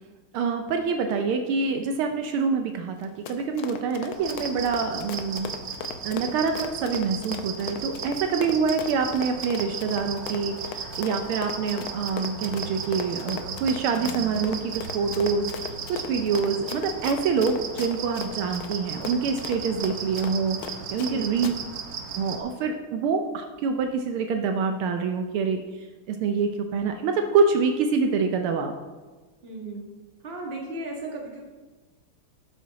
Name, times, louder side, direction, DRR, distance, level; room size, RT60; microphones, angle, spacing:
voice 1, 0.3-5.5 6.0-21.5 22.1-28.7, right 5 dB, 80° right, 5 dB, 1.5 m, -26 dB
Run, 3.0-21.1 21.4-21.5, left 8 dB, 75° left, 1.5 m, -38 dB
sound 1, 4.1-22.4, right 6 dB, 60° right, 1.4 m, -36 dB
voice 2, 21.0-21.4 29.4-29.8 30.2-31.4, right 2 dB, 30° right, -1 dB, 1.6 m, -35 dB
12.0 x 6.2 x 4.0 m, 1.3 s
omnidirectional pair, 2.4 m